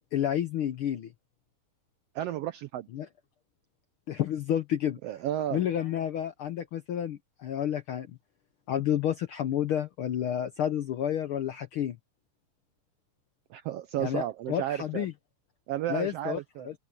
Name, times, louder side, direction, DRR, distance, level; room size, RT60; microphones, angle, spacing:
voice 1, 0.1-1.1 2.9-3.1 4.1-5.0 5.5-8.1 8.7-12.0 14.0-15.1 15.9-16.4 16.7-16.8, left 10 dB, 70° left, 1.3 m, -30 dB
voice 2, 2.1-2.9 5.0-5.6 13.5-15.1 15.7-16.7, right 12 dB, 80° right, 1.4 m, -33 dB
open air
omnidirectional pair, 3.4 m